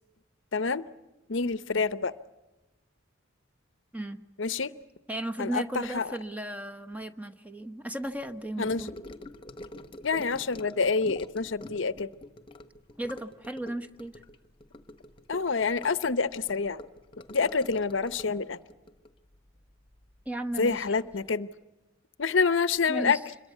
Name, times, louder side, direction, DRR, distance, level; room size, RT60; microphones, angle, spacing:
voice 1, 0.5-0.8 1.3-2.1 4.4-4.7 5.4-6.1 8.6-8.8 10.0-12.1 15.3-16.8 17.3-18.6 20.6-21.5 22.2-23.2, left 4 dB, 65° left, 15 dB, 0.8 m, -27 dB
voice 2, 5.1-8.9 13.0-14.2 20.3-21.1 22.9-23.2, right 1 dB, 10° right, 7 dB, 1.0 m, -35 dB
Gurgling / Sink (filling or washing) / Trickle dribble, 8.6-20.3 20.5-20.9 21.1-21.2, left 1 dB, 25° left, 1.2 m, -46 dB
26.0 x 22.5 x 8.3 m, 1.0 s
head